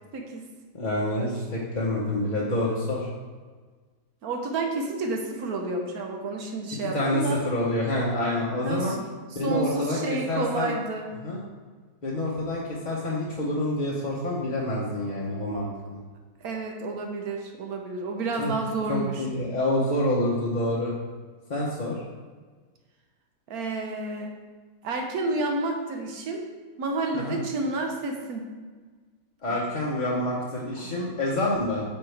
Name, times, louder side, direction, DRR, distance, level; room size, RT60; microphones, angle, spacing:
voice 1, 0.1-0.5 1.1-1.3 4.2-7.4 8.6-9.0 9.4-11.2 16.4-19.3 23.5-24.4 24.8-26.4 26.8-28.5 29.5-29.6 30.8-31.2, right 2 dB, 70° right, 2 dB, 1.3 m, -30 dB
voice 2, 0.7-3.1 6.9-8.9 9.3-10.7 11.2-11.4 12.0-16.0 18.4-18.5 18.9-20.9 21.5-22.0 27.1-27.4 29.4-31.8, left 1 dB, 35° left, -6 dB, 0.8 m, -27 dB
8.5 x 4.5 x 3.4 m, 1.4 s
omnidirectional pair, 1.7 m